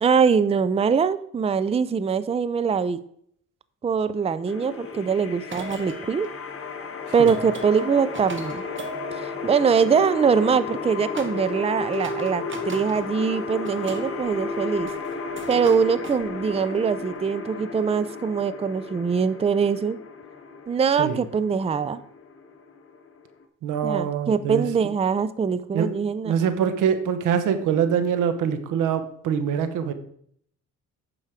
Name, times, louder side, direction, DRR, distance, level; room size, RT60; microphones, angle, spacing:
voice 1, 0.0-3.0 3.8-6.3 7.1-8.6 9.1-14.9 15.5-20.0 20.7-22.0 23.8-26.3, right 6 dB, 20° right, 15 dB, 0.5 m, -23 dB
sound 1, 4.5-23.4, left 4 dB, 45° left, 1.5 m, -34 dB
sound 2, 5.4-10.1 11.1-11.6 11.9-13.1 13.3-16.9, right 3 dB, 40° right, 1.3 m, -40 dB
voice 2, 23.6-24.6 25.7-26.0 26.2-29.9, right 7 dB, 85° right, 10 dB, 1.1 m, -24 dB
8.9 x 6.2 x 5.0 m, 0.66 s
cardioid pair, 90°, 30 cm